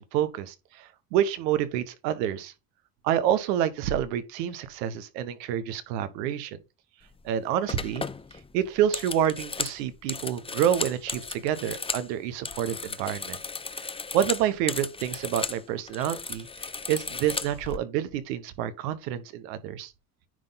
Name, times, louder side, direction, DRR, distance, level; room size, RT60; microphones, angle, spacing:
voice 1, 0.0-2.5 3.0-6.6 7.2-8.1 8.5-13.4 13.8-19.9, right 10 dB, 80° right, 1.2 m, -28 dB
sound 1, 7.1-7.3 7.7-12.1 12.4-15.6 15.9-17.8, left 4 dB, 10° left, 0.5 m, -35 dB
9.7 x 3.8 x 4.0 m
hypercardioid pair, 70°, 48 cm